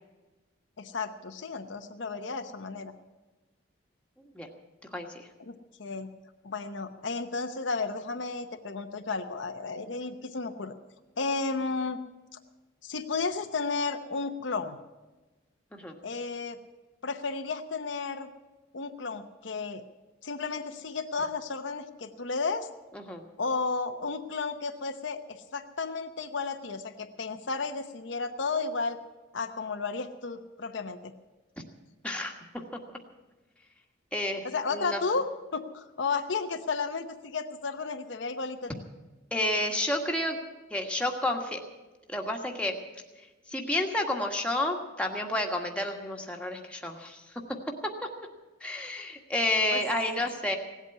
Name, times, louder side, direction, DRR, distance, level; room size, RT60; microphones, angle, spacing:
voice 1, 0.8-2.9 5.5-5.6 5.8-6.1 6.4-10.7 11.2-12.0 12.8-14.8 16.0-16.6 17.0-18.3 18.7-19.8 20.2-22.7 23.4-29.0 29.3-31.0 34.4-38.8 49.7-49.8, left 4 dB, 70° left, 7 dB, 0.9 m, -33 dB
voice 2, 4.9-5.3 15.7-15.9 22.9-23.2 32.0-32.3 34.1-34.4 34.7-35.0 39.3-40.4 40.7-41.6 42.1-42.8 43.5-47.2 47.5-48.1 48.6-50.6, left 1 dB, 5° left, 1 dB, 1.5 m, -30 dB
17.0 x 8.3 x 9.6 m, 1.2 s
head